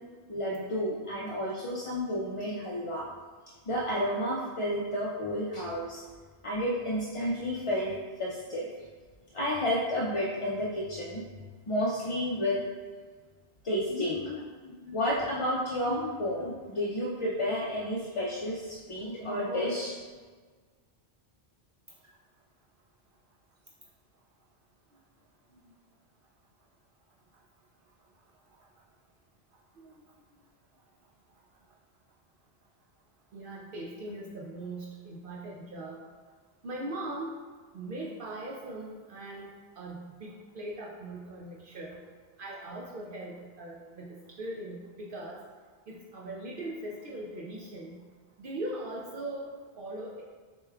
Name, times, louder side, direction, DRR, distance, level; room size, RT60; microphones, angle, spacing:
voice 1, 0.3-3.1 3.7-6.0 6.4-8.7 9.3-11.2 11.7-12.6 13.6-19.9, left 1 dB, 45° left, -4 dB, 0.4 m, -31 dB
voice 2, 33.3-36.0 36.6-37.4 37.7-42.0 42.4-45.4 45.9-48.0 48.4-50.2, right 1 dB, 60° right, -3 dB, 0.7 m, -40 dB
6.5 x 3.0 x 2.3 m, 1.5 s
omnidirectional pair, 1.1 m